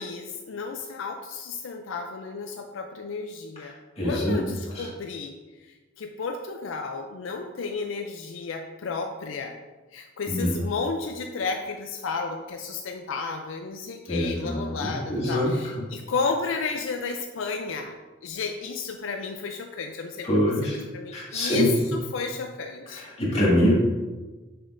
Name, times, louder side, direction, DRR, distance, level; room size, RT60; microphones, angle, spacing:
voice 1, 0.0-3.7 4.0-5.4 5.6-9.6 9.9-17.9 18.2-20.4 20.7-23.1, left 4 dB, 75° left, 4 dB, 0.4 m, -32 dB
voice 2, 3.6-4.4 4.7-4.9 10.3-10.5 14.1-15.8 20.2-20.8 21.1-21.9 22.9-23.7, left 1 dB, 30° left, -6 dB, 2.0 m, -25 dB
6.4 x 6.1 x 2.5 m, 1.2 s
head